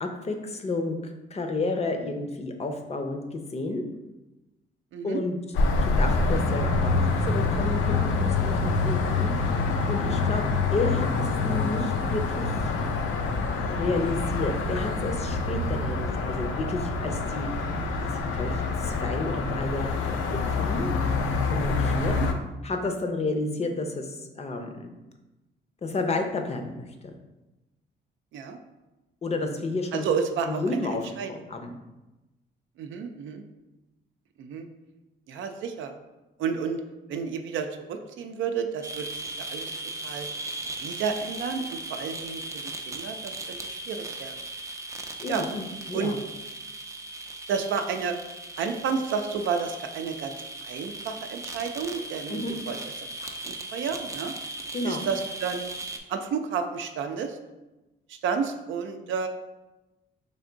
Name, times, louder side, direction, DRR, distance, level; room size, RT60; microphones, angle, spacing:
voice 1, 0.0-1.0 1.3-3.8 5.0-5.4 5.8-9.3 9.9-10.4 10.7-12.5 13.7-17.5 18.0-20.9 21.5-22.2 22.6-24.9 25.8-26.8 27.0-27.1 29.2-30.0 30.5-31.0 31.3-31.7 45.2-46.1 52.3-52.5 54.7-55.0, left 2 dB, 30° left, 5 dB, 0.5 m, -31 dB
sound 1, 5.5-22.3, left 3 dB, 85° left, 0.5 m, -26 dB
voice 2, 29.9-30.9 31.2-31.3 32.8-33.4 34.4-34.7 35.3-35.9 36.4-36.8 37.1-39.7 40.0-40.3 40.8-44.5 45.3-45.4 45.9-46.2 47.5-48.2 48.6-50.3 50.6-52.8 53.2-54.3 54.8-55.7 56.1-57.4 58.1-59.3, right 6 dB, 75° right, 6 dB, 0.5 m, -31 dB
sound 2, 38.8-56.0, right 2 dB, 15° right, 0.4 m, -38 dB
3.4 x 2.6 x 3.8 m, 1.0 s
cardioid pair, 90°, 20 cm